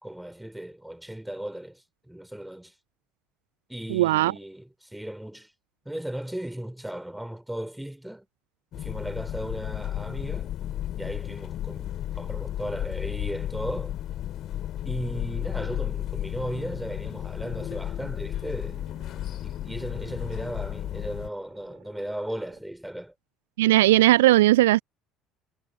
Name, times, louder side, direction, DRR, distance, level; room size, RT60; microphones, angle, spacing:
voice 1, 0.0-2.7 3.7-5.5 5.9-8.3 8.8-10.5 11.0-14.0 14.8-18.8 19.4-23.1, right 1 dB, 5° right, 3.9 m, -36 dB
voice 2, 3.9-4.3 23.6-24.8, right 16 dB, 70° right, 0.7 m, -18 dB
sound 1, 8.7-21.3, left 12 dB, 50° left, 4.0 m, -33 dB
sound 2, 16.9-22.6, right 14 dB, 50° right, 5.0 m, -57 dB
figure-of-eight pair, 55°, 0 cm